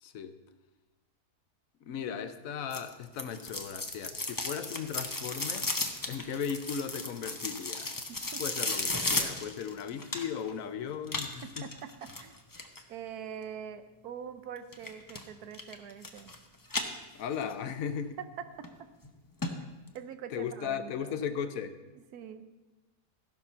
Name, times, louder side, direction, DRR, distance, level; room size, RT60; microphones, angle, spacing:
voice 1, 0.0-0.4 1.8-5.7 6.0-8.0 8.4-11.7 17.1-18.2 20.3-21.8, left 7 dB, 65° left, 10 dB, 1.1 m, -37 dB
sound 1, 2.7-10.5 11.1-12.8 14.7-15.2 15.5-16.4 16.7-17.5 17.9-18.0 18.6-18.7 19.0-19.1 19.4-19.5 19.9-20.0, left 2 dB, 20° left, 0.5 m, -35 dB
voice 2, 8.1-8.4 11.4-12.3 12.9-16.3 18.2-18.7 19.9-21.2 22.1-22.5, right 8 dB, 75° right, 10 dB, 1.2 m, -43 dB
15.0 x 5.9 x 5.5 m, 1.1 s
omnidirectional pair, 1.7 m